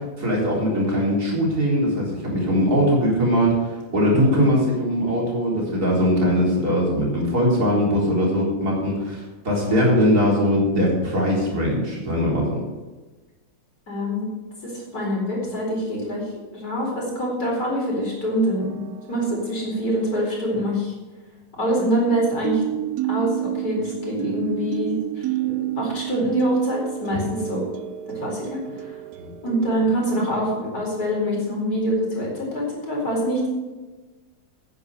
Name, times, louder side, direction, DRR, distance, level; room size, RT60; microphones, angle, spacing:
voice 1, 0.0-12.6 27.1-27.2 29.1-29.3, equal, 50° right, -3 dB, 4.5 m, -21 dB
voice 2, 13.9-14.2 14.6-18.7 19.1-20.9 21.6-22.6 23.1-25.0 25.4-27.6 28.1-28.9 29.4-33.5, equal, 50° left, -3 dB, 4.8 m, -25 dB
sound 1, 18.6-19.4 22.0-29.8, right 14 dB, 75° right, 0.9 m, -30 dB
10.0 x 9.6 x 6.5 m, 1.2 s
omnidirectional pair, 2.1 m